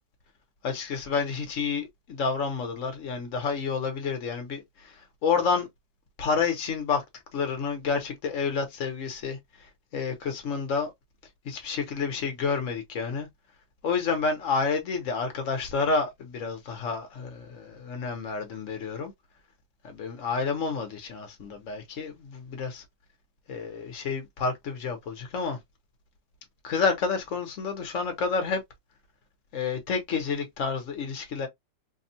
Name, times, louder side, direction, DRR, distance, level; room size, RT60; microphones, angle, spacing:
voice 1, 0.6-5.7 6.2-7.0 7.3-10.9 11.4-13.3 13.8-19.1 19.8-22.8 23.5-25.6 26.6-28.6 29.5-31.5, left 5 dB, 50° left, 1.1 m, -29 dB
3.5 x 2.3 x 2.7 m
omnidirectional pair, 2.0 m